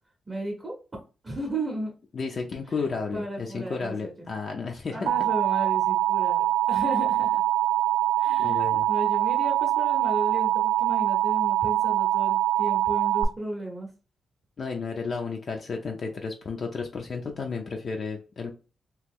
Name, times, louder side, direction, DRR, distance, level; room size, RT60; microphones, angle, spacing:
voice 1, 0.3-0.7 1.2-1.9 2.7-2.8 3.1-4.1 4.9-7.4 8.2-13.9, right 1 dB, 20° right, -2 dB, 0.7 m, -34 dB
voice 2, 2.1-5.1 8.4-8.9 14.6-18.5, left 4 dB, 40° left, 2 dB, 0.4 m, -32 dB
Alarm, 5.1-13.2, right 13 dB, 80° right, 0.3 m, -24 dB
2.9 x 2.3 x 3.5 m, 0.33 s
wide cardioid pair, 170°, 0 cm